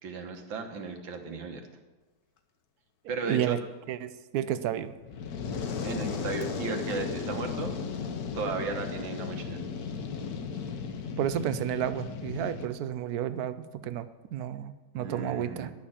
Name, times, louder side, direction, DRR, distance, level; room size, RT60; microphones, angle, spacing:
voice 1, 0.0-1.6 3.1-3.6 5.8-7.7 8.3-9.6 14.9-15.7, right 4 dB, 90° right, 4 dB, 2.1 m, -35 dB
voice 2, 3.3-3.6 3.9-4.9 11.2-13.6 13.8-15.7, right 10 dB, 65° right, 13 dB, 1.0 m, -31 dB
Fire, 5.0-12.7, left 5 dB, 60° left, 1.2 m, -35 dB
11.5 x 6.6 x 8.7 m, 1.2 s
omnidirectional pair, 2.0 m